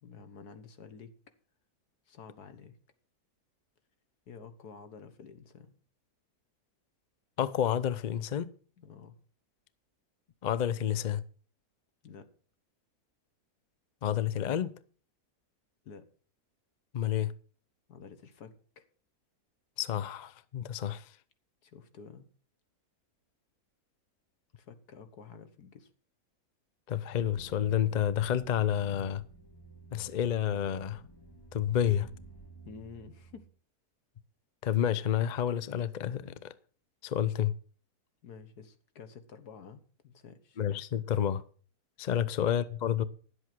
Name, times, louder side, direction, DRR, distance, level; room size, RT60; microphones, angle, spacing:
voice 1, 0.0-1.1 2.1-2.8 4.3-5.8 8.8-9.2 12.0-12.3 15.8-16.1 17.9-18.8 21.6-22.3 24.6-25.9 32.7-33.5 38.2-40.6, left 5 dB, 80° left, 1.9 m, -50 dB
voice 2, 7.4-8.5 10.4-11.2 14.0-14.7 16.9-17.3 19.8-21.1 26.9-29.2 29.9-31.0 31.5-32.1 34.6-36.5 37.0-37.5 40.6-41.4 42.0-43.0, left 10 dB, 50° left, 0.5 m, -29 dB
sound 1, 27.2-33.5, right 2 dB, 20° left, 0.8 m, -52 dB
11.5 x 8.1 x 6.1 m
omnidirectional pair, 1.7 m